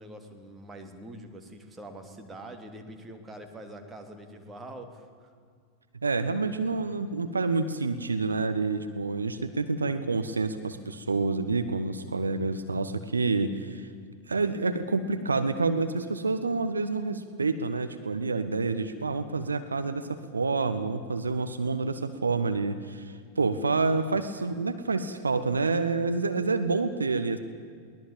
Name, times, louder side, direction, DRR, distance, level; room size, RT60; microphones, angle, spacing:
voice 1, 0.0-5.3, right 1 dB, 15° right, 5 dB, 3.0 m, -44 dB
voice 2, 6.0-13.9 14.3-27.4, right 3 dB, 75° right, 10 dB, 1.1 m, -28 dB
23.0 x 19.0 x 8.9 m, 2.1 s
figure-of-eight pair, 90°, 0 cm